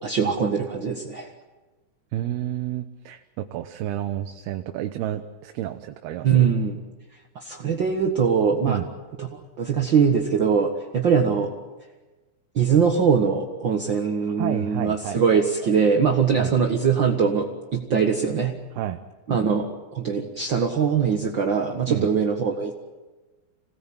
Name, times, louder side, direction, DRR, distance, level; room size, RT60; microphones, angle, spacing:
voice 1, 0.0-1.3 6.2-6.8 7.3-8.8 9.2-9.3 9.6-11.5 12.5-17.5 17.7-18.5 19.3-22.7, right 6 dB, 55° right, 2 dB, 1.3 m, -22 dB
voice 2, 2.1-6.5 8.7-8.9 14.4-15.7 16.4-16.5 18.8-19.0 21.9-22.1, right 12 dB, 80° right, 7 dB, 2.8 m, -30 dB
27.5 x 19.0 x 8.8 m, 1.2 s
omnidirectional pair, 4.6 m